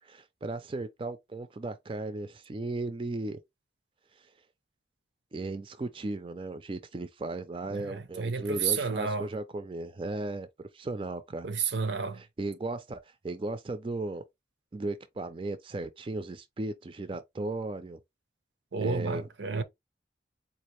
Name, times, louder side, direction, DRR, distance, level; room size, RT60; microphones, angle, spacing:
voice 1, 0.0-3.4 4.2-4.3 5.3-11.5 12.2-14.2 14.7-18.0 18.8-19.2, right 2 dB, 30° right, 0.4 m, -36 dB
voice 2, 7.7-9.3 11.4-12.2 18.7-19.6, right 5 dB, 80° right, 0.6 m, -31 dB
4.3 x 2.5 x 3.0 m
head